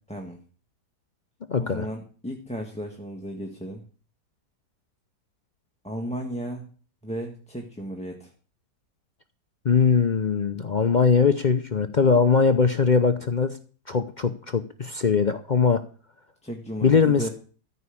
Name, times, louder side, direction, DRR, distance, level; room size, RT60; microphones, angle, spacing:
voice 1, 0.1-0.4 1.6-3.8 5.8-6.7 7.0-8.3 16.4-17.3, equal, 5° left, 1 dB, 1.4 m, -34 dB
voice 2, 1.5-1.9 9.6-13.6 13.9-15.8 16.8-17.3, left 5 dB, 60° left, 9 dB, 0.4 m, -21 dB
14.0 x 5.5 x 8.5 m, 0.40 s
omnidirectional pair, 1.8 m